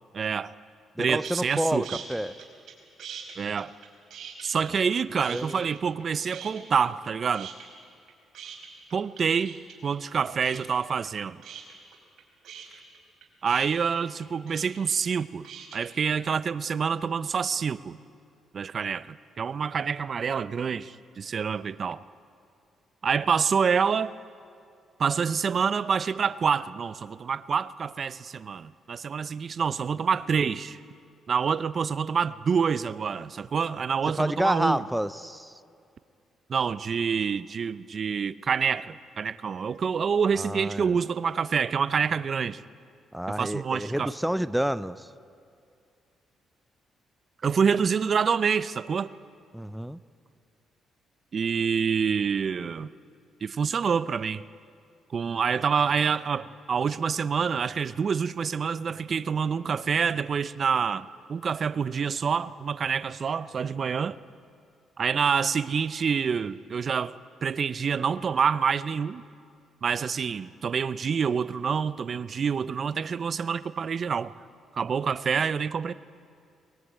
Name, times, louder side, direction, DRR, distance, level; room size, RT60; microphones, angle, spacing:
voice 1, 0.1-0.5 1.0-1.9 3.4-3.7 4.4-7.5 8.9-9.6 9.8-11.4 13.4-15.5 15.7-18.0 18.5-22.0 23.0-24.1 25.0-30.8 31.3-34.8 36.5-42.6 43.3-44.1 47.4-49.1 51.3-52.9 53.4-54.4 55.1-64.2 65.0-67.2 67.4-69.2 69.8-74.3 74.7-75.9, right 6 dB, 45° right, 17 dB, 0.6 m, -27 dB
voice 2, 1.0-2.3 5.3-5.6 34.2-35.5 40.3-41.0 43.1-45.1 49.5-50.0, equal, 5° right, 15 dB, 0.6 m, -29 dB
sound 1, 1.2-1.6 1.8-2.7 3.0-5.0 5.2-6.0 6.3-7.1 7.3-15.8, right 8 dB, 65° right, 4.7 m, -42 dB
23.0 x 21.0 x 9.0 m, 2.4 s
cardioid pair, 90°, 0 cm